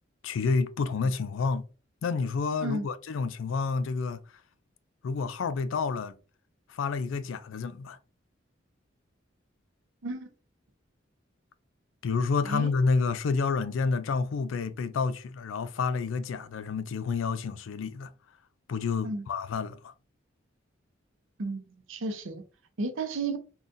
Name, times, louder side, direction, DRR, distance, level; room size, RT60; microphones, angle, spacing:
voice 1, 0.2-1.7 2.0-4.2 5.0-6.2 6.7-8.0 12.0-18.1 18.7-19.9, left 4 dB, 90° left, 0.4 m, -29 dB
voice 2, 21.9-22.4 22.8-23.4, right 2 dB, 90° right, 0.6 m, -32 dB
3.8 x 2.3 x 2.5 m
head